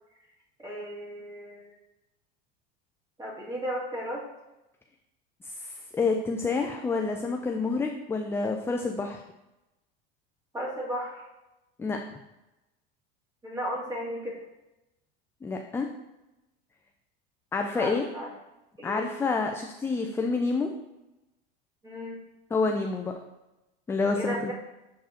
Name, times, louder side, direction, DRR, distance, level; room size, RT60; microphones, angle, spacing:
voice 1, 0.6-1.7 3.2-4.2 10.5-11.3 13.4-14.4 17.7-18.3 18.8-19.1 21.8-22.2 24.1-24.5, equal, 10° right, -5 dB, 2.2 m, -34 dB
voice 2, 5.4-9.2 11.8-12.0 15.4-15.9 17.5-18.0 18.8-20.7 22.5-23.1 23.9-24.5, left 4 dB, 10° left, 3 dB, 0.3 m, -28 dB
7.1 x 4.6 x 2.9 m, 0.96 s
hypercardioid pair, 95°, 29 cm